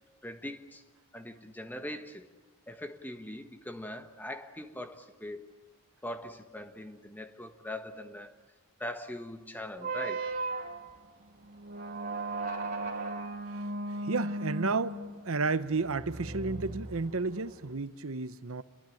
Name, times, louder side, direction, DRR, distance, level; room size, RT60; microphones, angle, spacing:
voice 1, 0.2-0.8 1.1-2.2 2.7-5.5 6.0-8.3 8.8-10.3, left 1 dB, 10° left, 1.3 m, -41 dB
sound 1, 9.8-17.6, right 2 dB, 40° right, 2.5 m, -37 dB
voice 2, 13.9-18.6, right 3 dB, 70° right, 0.9 m, -32 dB
29.5 x 22.5 x 8.6 m
head